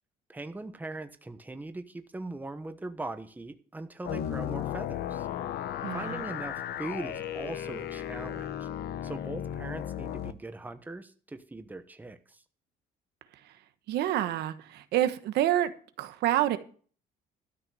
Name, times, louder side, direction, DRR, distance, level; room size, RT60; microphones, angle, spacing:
voice 1, 0.3-5.3 5.9-8.7 9.0-12.4, right 2 dB, 10° right, 1.1 m, -40 dB
sound 1, 4.0-10.3, left 10 dB, 70° left, 1.0 m, -35 dB
voice 2, 5.8-6.2 13.9-15.7 16.0-16.6, right 12 dB, 80° right, 1.2 m, -27 dB
13.0 x 6.0 x 7.7 m
cardioid pair, 110°, 17 cm